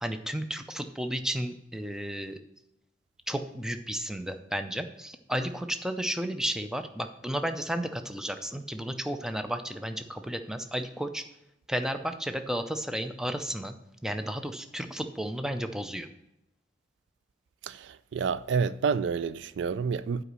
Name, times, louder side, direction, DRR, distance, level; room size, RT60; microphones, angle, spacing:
voice 1, 0.0-2.3 3.3-11.2 11.7-13.7 14.0-16.1, equal, 5° right, 0.5 m, -33 dB
voice 2, 17.6-20.2, right 5 dB, 70° right, 0.3 m, -29 dB
8.3 x 5.0 x 6.1 m
head